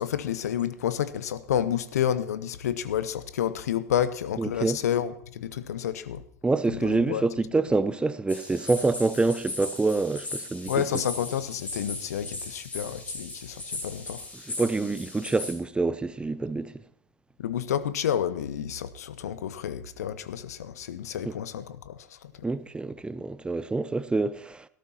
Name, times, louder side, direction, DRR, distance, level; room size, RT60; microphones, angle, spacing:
voice 1, 0.0-6.2 6.7-7.2 10.7-14.2 17.4-22.3, left 9 dB, 70° left, 0.8 m, -30 dB
voice 2, 4.4-4.8 6.4-10.9 14.5-16.7 21.2-21.3 22.4-24.7, right 3 dB, 10° right, 0.6 m, -26 dB
sound 1, 8.3-15.5, left 2 dB, 15° left, 3.7 m, -38 dB
17.5 x 13.5 x 2.9 m
figure-of-eight pair, 85°, 9 cm